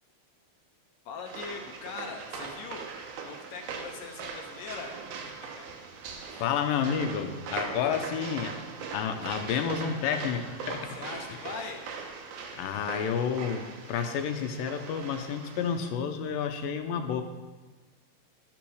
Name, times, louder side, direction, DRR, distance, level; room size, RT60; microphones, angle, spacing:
voice 1, 1.1-2.9 3.2-5.0 5.4-5.7 6.2-6.5 10.9-11.9, left 5 dB, 70° left, 3 dB, 1.9 m, -41 dB
sound 1, 1.3-15.9, right 5 dB, 70° right, 2.2 m, -40 dB
voice 2, 6.3-8.6 8.9-11.0 12.5-17.2, left 7 dB, 85° left, 7 dB, 2.5 m, -30 dB
12.5 x 6.0 x 6.3 m, 1.3 s
omnidirectional pair, 3.9 m